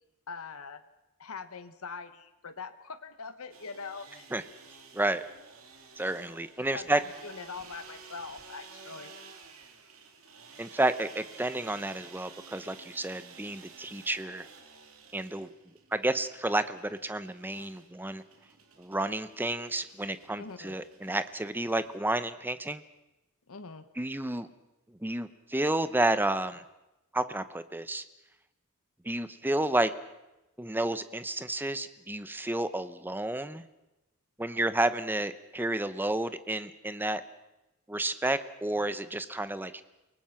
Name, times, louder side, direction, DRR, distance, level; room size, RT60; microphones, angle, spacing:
voice 1, 0.3-0.8 1.2-4.3 6.7-9.1 20.4-20.8 23.5-23.9, left 5 dB, 75° left, 10 dB, 1.0 m, -42 dB
sound 1, 3.5-22.0, right 5 dB, 65° right, 2.8 m, -53 dB
voice 2, 6.0-7.0 10.6-14.5 15.1-15.5 15.9-18.2 18.8-22.8 24.0-24.5 25.0-26.6 27.1-28.0 29.0-29.9 30.6-33.6 34.4-37.2 37.9-39.8, right 1 dB, 10° right, 12 dB, 0.8 m, -31 dB
29.5 x 19.0 x 5.8 m, 0.96 s
head